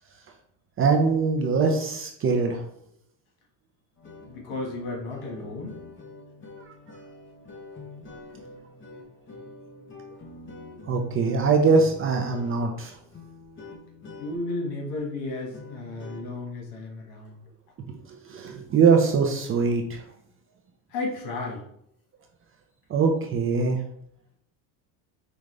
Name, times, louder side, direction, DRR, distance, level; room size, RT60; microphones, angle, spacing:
voice 1, 0.8-2.6 10.8-13.0 17.9-20.0 22.9-23.8, right 5 dB, 30° right, 3 dB, 0.5 m, -22 dB
sound 1, 4.0-16.2, left 3 dB, 25° left, 0.8 m, -45 dB
voice 2, 4.2-5.8 14.2-17.4 20.9-21.6, left 2 dB, 70° left, 0 dB, 1.6 m, -33 dB
5.1 x 2.4 x 3.2 m, 0.71 s
supercardioid pair, 120°, 49 cm